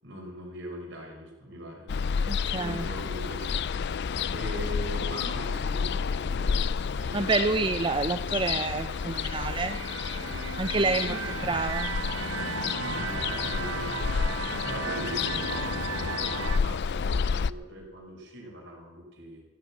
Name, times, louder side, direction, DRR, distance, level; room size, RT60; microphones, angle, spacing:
voice 1, 0.0-7.3 11.0-11.5 12.7-19.4, equal, 60° right, -1 dB, 5.7 m, -41 dB
Ocean, 1.9-17.5, left 6 dB, 60° left, 0.4 m, -30 dB
voice 2, 2.3-2.9 7.1-9.8 10.6-11.2 11.5-11.9, right 3 dB, 25° right, 9 dB, 0.5 m, -28 dB
sound 1, 8.5-16.6, right 6 dB, 80° right, 0.8 m, -36 dB
16.0 x 9.4 x 8.8 m, 1.3 s
head